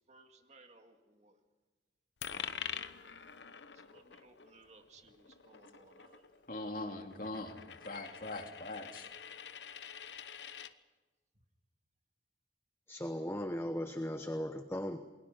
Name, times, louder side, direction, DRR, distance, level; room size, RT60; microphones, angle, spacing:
voice 1, 0.1-1.4 3.8-6.4, right 3 dB, 40° right, 5 dB, 2.1 m, -61 dB
Coin (dropping), 2.2-10.7, left 8 dB, 80° left, 1.0 m, -46 dB
voice 2, 6.5-9.1, left 2 dB, 50° left, 4 dB, 2.5 m, -42 dB
voice 3, 12.9-15.0, equal, 15° left, 7 dB, 1.0 m, -37 dB
28.5 x 21.5 x 5.7 m, 1.3 s
head